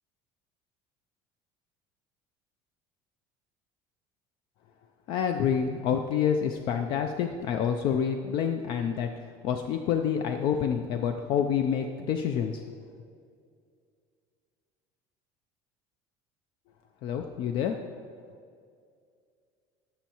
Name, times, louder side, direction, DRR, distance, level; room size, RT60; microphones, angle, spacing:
voice 1, 5.1-12.7 17.0-18.0, left 8 dB, 50° left, 6 dB, 0.4 m, -28 dB
12.5 x 6.3 x 3.0 m, 2.2 s
cardioid pair, 170°, 10 cm